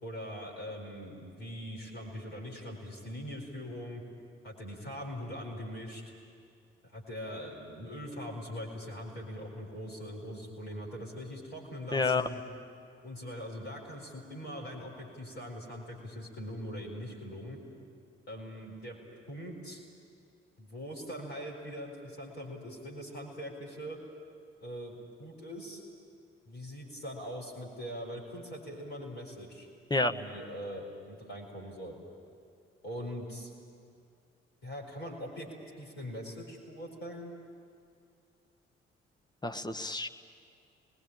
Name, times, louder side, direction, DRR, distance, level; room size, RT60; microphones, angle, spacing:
voice 1, 0.0-4.0 4.4-6.0 6.8-12.4 13.0-17.6 18.3-19.0 19.3-19.8 20.6-24.0 24.6-25.8 26.4-29.7 30.1-32.0 32.8-33.5 34.6-35.5 35.8-37.3, equal, 80° left, -2 dB, 4.6 m, -42 dB
voice 2, 11.9-12.3 29.9-30.1 39.4-40.1, left 3 dB, 15° left, 7 dB, 1.2 m, -29 dB
27.0 x 20.5 x 8.8 m, 2.3 s
figure-of-eight pair, 40°, 31 cm